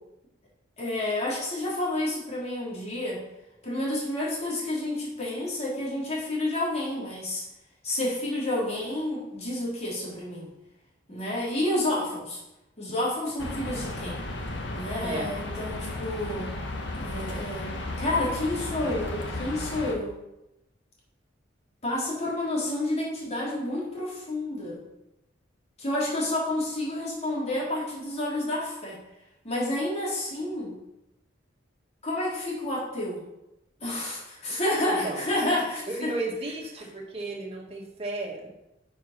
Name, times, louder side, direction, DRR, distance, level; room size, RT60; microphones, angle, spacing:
voice 1, 0.8-3.2 3.6-7.5 7.8-10.5 11.1-12.4 12.8-14.2 14.7-16.5 16.9-20.2 21.8-24.8 25.8-29.0 29.4-30.7 32.0-33.2 33.8-36.1, left 1 dB, 35° left, -5 dB, 3.6 m, -30 dB
sound 1, 13.4-19.9, left 2 dB, 65° left, 1.4 m, -34 dB
voice 2, 34.8-35.2 35.9-38.5, right 2 dB, 35° right, -2 dB, 2.2 m, -34 dB
9.3 x 5.8 x 5.9 m, 0.92 s
head